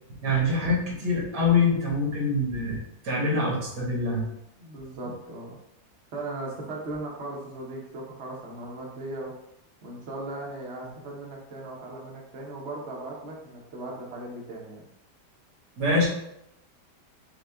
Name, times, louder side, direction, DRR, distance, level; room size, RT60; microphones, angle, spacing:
voice 1, 0.2-2.8 3.0-4.2 15.8-16.1, left 2 dB, 75° right, -4 dB, 2.0 m, -24 dB
voice 2, 4.6-5.6 6.1-9.3 9.8-14.8, right 2 dB, 50° right, -2 dB, 1.0 m, -38 dB
6.2 x 2.3 x 3.4 m, 0.80 s
omnidirectional pair, 1.8 m